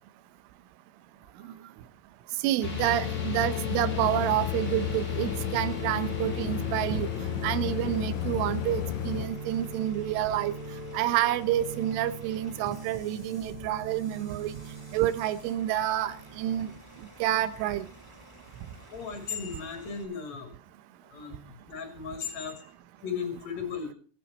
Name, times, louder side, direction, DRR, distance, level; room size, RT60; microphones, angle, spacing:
voice 1, 2.4-7.1 7.4-10.5 10.9-14.5 14.9-16.7 17.2-17.9, right 13 dB, 80° right, 14 dB, 3.4 m, -28 dB
sound 1, 2.6-9.3, left 16 dB, 75° left, 3.0 m, -33 dB
sound 2, 2.6-16.8, equal, 20° left, 1.9 m, -40 dB
Bus / Idling, 4.0-20.0, equal, 5° right, 5.9 m, -52 dB
voice 2, 18.9-20.5 21.1-22.7 23.0-23.9, left 6 dB, 40° left, 5 dB, 3.4 m, -36 dB
24.5 x 9.5 x 4.2 m, 0.42 s
omnidirectional pair, 5.9 m